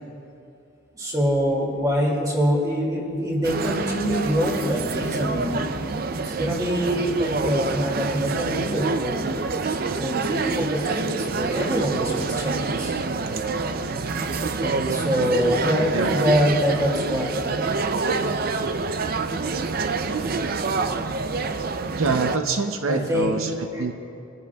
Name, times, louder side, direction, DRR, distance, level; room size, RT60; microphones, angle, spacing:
voice 1, 1.0-5.6 6.4-9.3 10.0-12.9 14.6-17.4 22.9-23.4 23.7-23.8, equal, 20° right, -2 dB, 2.3 m, -24 dB
sound 1, 3.4-22.4, right 3 dB, 45° right, 0.5 m, -26 dB
voice 2, 15.9-16.2 22.0-23.9, right 3 dB, 85° right, 6 dB, 0.7 m, -25 dB
24.0 x 15.0 x 2.3 m, 2.7 s
head